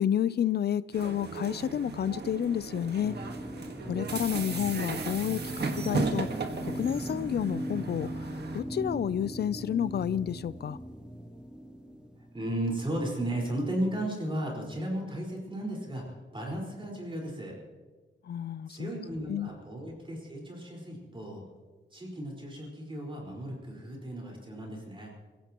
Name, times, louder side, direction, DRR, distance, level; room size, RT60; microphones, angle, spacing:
voice 1, 0.0-3.1 3.9-6.3 6.6-8.1 8.5-10.8 18.3-18.9 19.3-19.5, left 9 dB, 55° left, 17 dB, 0.5 m, -30 dB
sound 1, 0.9-8.6, right 4 dB, 55° right, 1.6 m, -36 dB
sound 2, 3.0-12.5, equal, 5° right, 1.2 m, -39 dB
voice 2, 12.3-17.6 18.7-21.4 21.9-25.1, right 1 dB, 25° right, -1 dB, 4.8 m, -35 dB
27.5 x 16.5 x 3.0 m, 1.4 s
wide cardioid pair, 140°, 20 cm